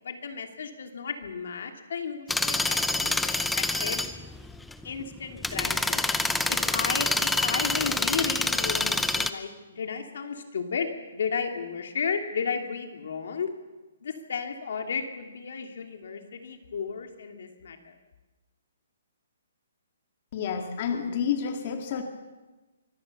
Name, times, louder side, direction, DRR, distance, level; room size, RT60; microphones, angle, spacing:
voice 1, 0.0-4.0 4.8-6.0 6.5-13.5 14.0-17.9, left 6 dB, 60° left, 5 dB, 2.8 m, -33 dB
sound 1, 2.3-9.3, left 2 dB, 5° left, 0.6 m, -27 dB
voice 2, 20.3-22.0, left 7 dB, 35° left, 5 dB, 1.9 m, -29 dB
24.5 x 17.0 x 6.9 m, 1.2 s
hypercardioid pair, 170°, 0 cm